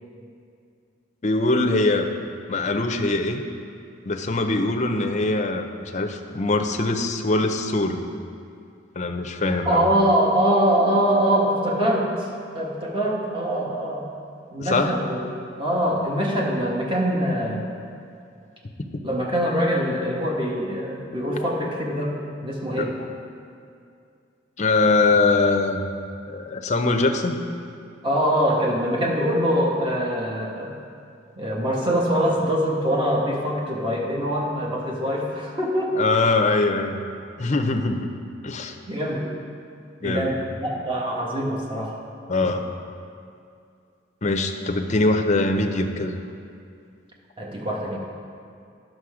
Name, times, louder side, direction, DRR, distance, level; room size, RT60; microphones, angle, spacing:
voice 1, 1.2-2.1 2.5-3.4 4.0-8.1 9.0-9.9 14.6-15.0 22.8-22.9 24.6-25.8 26.3-27.4 36.0-37.0 37.4-38.1 38.4-38.8 40.0-40.3 42.3-42.7 44.2-46.2, left 2 dB, 40° left, 5 dB, 0.6 m, -22 dB
voice 2, 9.6-12.3 12.5-14.1 14.5-15.2 15.6-17.7 19.0-22.1 22.4-22.9 28.0-30.8 31.4-36.0 38.9-39.3 40.0-41.9 47.4-48.0, equal, 25° right, -3 dB, 1.4 m, -23 dB
10.0 x 6.5 x 4.9 m, 2.4 s
head